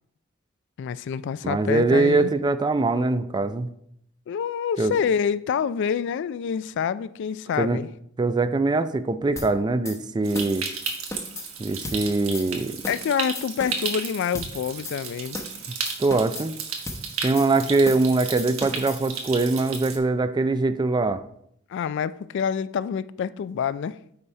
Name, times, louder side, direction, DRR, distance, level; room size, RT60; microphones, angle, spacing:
voice 1, 0.8-2.3 4.3-7.9 12.9-15.4 21.7-24.0, left 7 dB, 60° left, 0.3 m, -27 dB
voice 2, 1.4-3.7 4.8-4.9 7.6-7.8 8.2-10.7 11.6-12.8 16.0-16.5 17.2-21.2, right 3 dB, 20° right, 0.3 m, -22 dB
sound 1, 9.4-9.5 9.8-10.0 10.3-10.6 10.9-11.5 11.8-12.0 12.3-12.5 12.8-13.1 13.3-14.0 14.3-14.5 14.8-15.0 15.3-15.6 15.8-16.5 16.9-17.0 17.4-17.5 17.8-18.1 18.4-19.0, left 2 dB, 15° left, 0.8 m, -35 dB
Stream, 10.2-20.0, right 5 dB, 85° right, 1.3 m, -34 dB
8.7 x 4.1 x 4.7 m
head